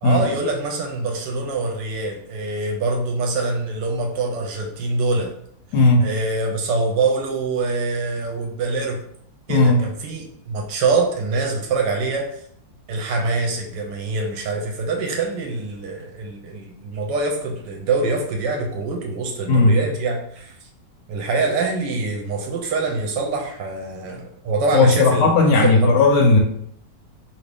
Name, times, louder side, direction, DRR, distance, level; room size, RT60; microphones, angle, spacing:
voice 1, 0.0-5.3 6.0-9.0 9.5-12.3 12.9-20.5 21.1-25.9, right 3 dB, 75° right, 1 dB, 1.1 m, -24 dB
voice 2, 5.7-6.1 9.5-9.8 19.5-19.8 24.7-26.4, left 3 dB, 70° left, 1 dB, 1.1 m, -15 dB
3.0 x 2.7 x 3.3 m, 0.69 s
omnidirectional pair, 2.0 m